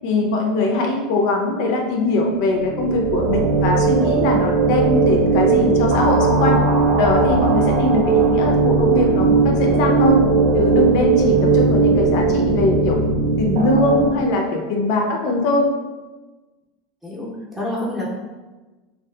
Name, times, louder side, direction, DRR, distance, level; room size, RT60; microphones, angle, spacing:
voice 1, 0.0-6.6 7.0-10.3 10.5-13.0 13.4-15.7, left 2 dB, 60° left, 1 dB, 0.4 m, -21 dB
sound 1, 2.5-14.1, right 4 dB, 55° right, 0.4 m, -18 dB
voice 2, 17.0-18.1, left 1 dB, 10° right, -6 dB, 0.7 m, -28 dB
2.6 x 2.3 x 2.2 m, 1.2 s
supercardioid pair, 135°, 2 cm